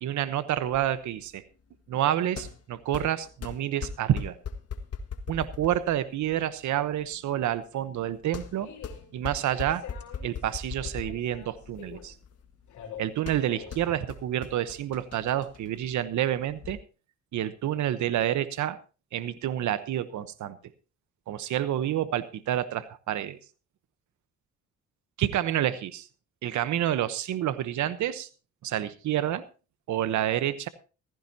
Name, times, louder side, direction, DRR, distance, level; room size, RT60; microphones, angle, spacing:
voice 1, 0.0-1.4 1.9-4.4 5.3-8.7 9.1-9.8 10.2-12.1 13.0-16.8 17.3-18.8 19.1-20.6 21.3-23.4 25.2-26.0 26.4-28.3 28.6-29.5 29.9-30.7, right 11 dB, 75° right, 12 dB, 1.0 m, -28 dB
sound 1, 0.6-16.8, left 5 dB, 55° left, 1.7 m, -41 dB
sound 2, 7.7-15.4, left 8 dB, 70° left, 4.0 m, -48 dB
15.5 x 15.0 x 2.8 m, 0.34 s
cardioid pair, 90°, 30 cm